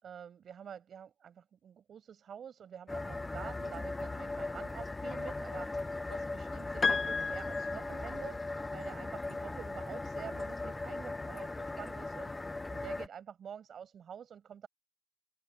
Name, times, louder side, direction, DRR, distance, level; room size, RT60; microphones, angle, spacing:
voice 1, 0.0-12.3 12.7-14.7, right 8 dB, 90° right, 4.9 m, -48 dB
sound 1, 2.9-13.1, left 2 dB, 25° left, 0.5 m, -38 dB
Piano, 6.8-8.5, left 5 dB, 55° left, 1.2 m, -33 dB
open air
wide cardioid pair, 100°, 0 cm